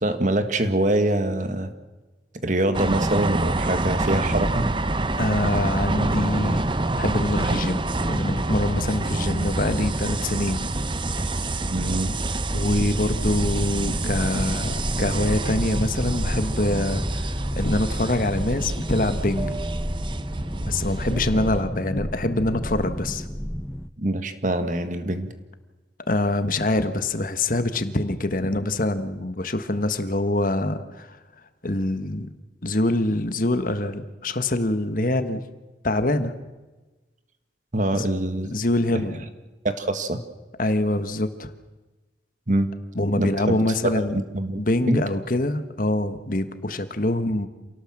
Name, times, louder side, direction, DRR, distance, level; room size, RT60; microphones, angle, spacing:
voice 1, 0.0-1.7 2.4-4.7 11.7-12.2 24.0-25.3 37.7-38.5 38.9-39.0 39.6-40.2 42.5-42.7 43.2-43.6 43.8-44.0 44.3-44.6 44.9-45.0, right 1 dB, 45° right, 9 dB, 1.6 m, -24 dB
sound 1, 2.7-21.6, right 2 dB, 25° right, 0.9 m, -27 dB
voice 2, 5.2-6.6 7.0-10.7 12.5-19.6 20.6-23.3 26.1-31.2 31.6-32.3 32.6-35.5 35.8-36.3 37.9-38.0 38.4-39.3 40.6-41.5 42.9-44.2 44.6-47.5, left 1 dB, 50° left, 10 dB, 1.5 m, -25 dB
sound 2, 12.5-23.9, equal, 5° left, 0.7 m, -32 dB
27.5 x 18.0 x 7.5 m, 1.2 s
head